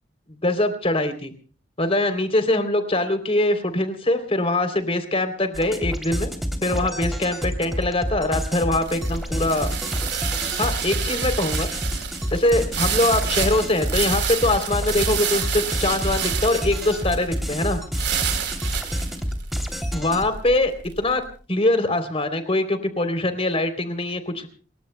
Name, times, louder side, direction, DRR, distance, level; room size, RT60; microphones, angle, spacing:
voice 1, 0.4-1.3 1.8-6.3 6.6-9.7 10.6-11.7 12.3-17.8 19.9-21.2 21.5-24.5, left 2 dB, 35° left, 8 dB, 3.3 m, -23 dB
sound 1, 5.5-20.3, equal, ahead, 3.0 m, -29 dB
sound 2, 7.8-21.1, right 7 dB, 70° right, 3.7 m, -29 dB
28.0 x 22.0 x 2.2 m, 0.39 s
head